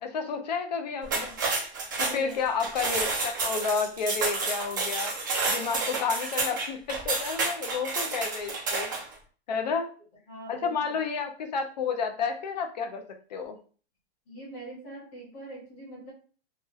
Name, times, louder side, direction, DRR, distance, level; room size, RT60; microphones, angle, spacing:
voice 1, 0.0-1.4 2.0-5.1 5.5-8.9 9.5-9.9 10.5-13.0 13.3-13.6, left 5 dB, 40° left, 6 dB, 0.5 m, -31 dB
sound 1, 1.0-9.1, right 3 dB, 20° right, 0.4 m, -30 dB
voice 2, 1.9-2.4 9.5-9.7 10.3-11.0 14.3-16.1, right 2 dB, 20° left, -10 dB, 1.3 m, -42 dB
3.1 x 2.2 x 3.0 m, 0.40 s
supercardioid pair, 180°, 33 cm